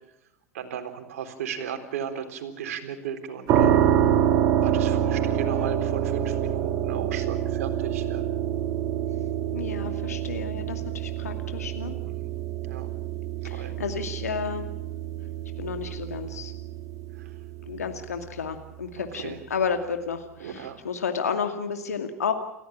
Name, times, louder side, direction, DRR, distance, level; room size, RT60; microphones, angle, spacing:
voice 1, 0.5-3.8 4.6-8.3 11.3-11.4 12.0-12.3 12.6-12.9 13.5-13.8 17.2-17.3 19.0-19.4 20.4-20.8, right 8 dB, 65° right, 6 dB, 3.9 m, -36 dB
sound 1, 3.5-18.3, right 10 dB, 45° right, 2.8 m, -27 dB
voice 2, 9.5-12.0 13.4-14.7 15.6-16.5 17.7-22.3, left 6 dB, 80° left, 6 dB, 2.3 m, -31 dB
29.0 x 15.5 x 7.3 m, 0.88 s
figure-of-eight pair, 85°, 8 cm